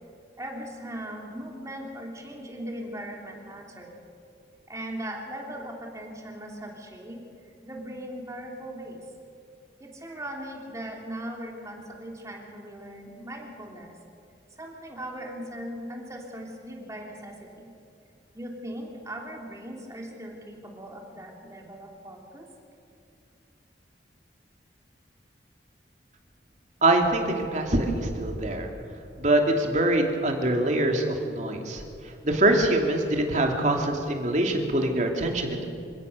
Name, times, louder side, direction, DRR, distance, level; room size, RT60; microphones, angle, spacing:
voice 1, 0.4-4.0 4.7-7.2 7.6-9.0 9.8-13.9 14.6-17.7 18.3-22.5, right 1 dB, 20° right, 0 dB, 3.0 m, -39 dB
voice 2, 26.8-28.7 29.2-31.8 32.2-35.7, right 1 dB, 45° right, 2 dB, 2.7 m, -24 dB
27.0 x 16.5 x 6.8 m, 2.6 s
head